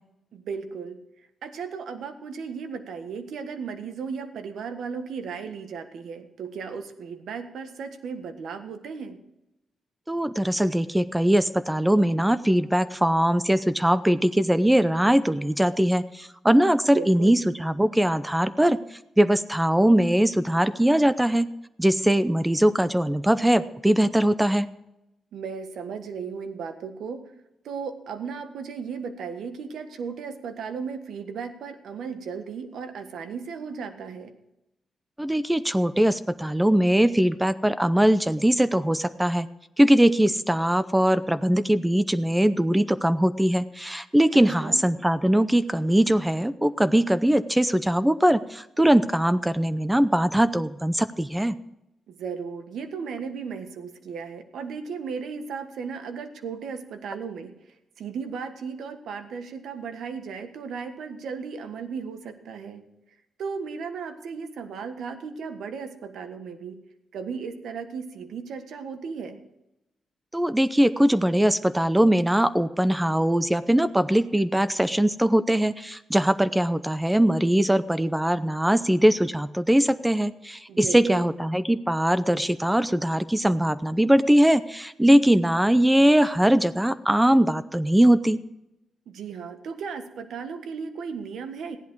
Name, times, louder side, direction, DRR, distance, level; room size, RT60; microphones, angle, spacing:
voice 1, 0.3-1.0 1.4-9.2 16.9-17.4 25.3-27.2 27.6-34.3 44.3-44.9 52.1-57.5 58.0-62.8 63.4-66.8 67.1-69.4 80.7-81.3 89.1-91.8, right 5 dB, 80° right, 8 dB, 1.5 m, -35 dB
voice 2, 10.1-18.8 19.2-21.5 21.8-24.7 35.2-39.5 39.8-51.6 70.3-88.4, right 1 dB, 5° right, 15 dB, 0.6 m, -21 dB
15.5 x 10.5 x 4.7 m, 0.90 s
cardioid pair, 105°, 0 cm